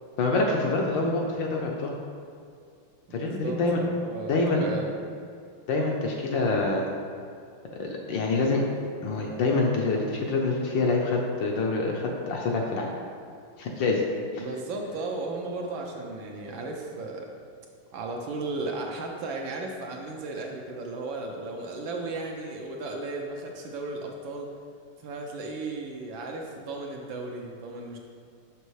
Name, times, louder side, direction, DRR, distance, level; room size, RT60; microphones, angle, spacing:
voice 1, 0.2-1.9 3.1-3.8 4.3-4.7 5.7-6.9 7.8-8.6 9.0-12.9 13.6-14.0 14.3-14.4, left 3 dB, 70° left, 0 dB, 1.2 m, -26 dB
voice 2, 3.1-4.9 14.4-17.3 17.9-24.5 25.0-28.0, right 3 dB, 70° right, 1 dB, 1.3 m, -35 dB
6.7 x 6.1 x 3.2 m, 2.3 s
omnidirectional pair, 2.4 m